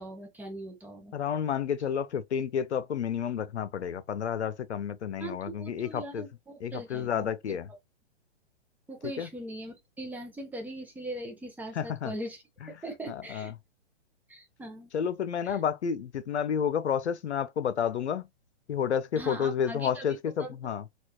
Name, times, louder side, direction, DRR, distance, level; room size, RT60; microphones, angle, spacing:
voice 1, 0.0-1.1 5.2-7.6 8.9-13.5 14.3-14.9 15.4-15.6 19.2-20.5, right 1 dB, 5° right, 0.6 m, -41 dB
voice 2, 1.1-6.2 6.6-7.7 9.2-9.3 11.8-12.1 13.1-13.5 14.9-18.3 18.7-20.8, left 8 dB, 85° left, 0.7 m, -30 dB
4.4 x 2.4 x 2.8 m
hypercardioid pair, 135°, 33 cm